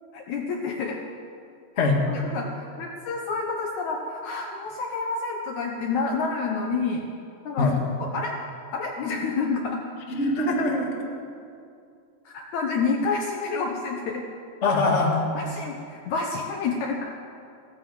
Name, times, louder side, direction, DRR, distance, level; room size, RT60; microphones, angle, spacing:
voice 1, 0.1-1.0 1.8-7.1 7.4-8.3 8.7-9.8 12.3-14.2 15.4-17.1, left 4 dB, 70° left, 1 dB, 1.9 m, -29 dB
voice 2, 10.1-10.9 14.6-15.2, left 2 dB, 30° left, -1 dB, 1.3 m, -22 dB
16.0 x 14.5 x 4.9 m, 2.4 s
omnidirectional pair, 4.1 m